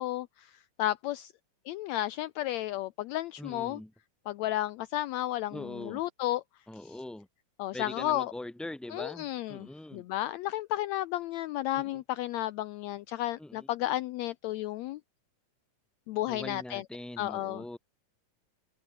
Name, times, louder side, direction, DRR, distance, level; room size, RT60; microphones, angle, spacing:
voice 1, 0.0-1.3 1.7-3.8 4.3-6.4 7.6-8.3 8.9-9.7 9.9-15.0 16.1-16.8 17.2-17.6, left 15 dB, 75° left, 1.8 m, -33 dB
voice 2, 3.4-3.9 5.5-6.0 6.7-7.3 7.7-10.1 11.7-12.0 13.4-13.7 16.3-17.8, left 1 dB, ahead, 2.7 m, -42 dB
omnidirectional pair, 3.4 m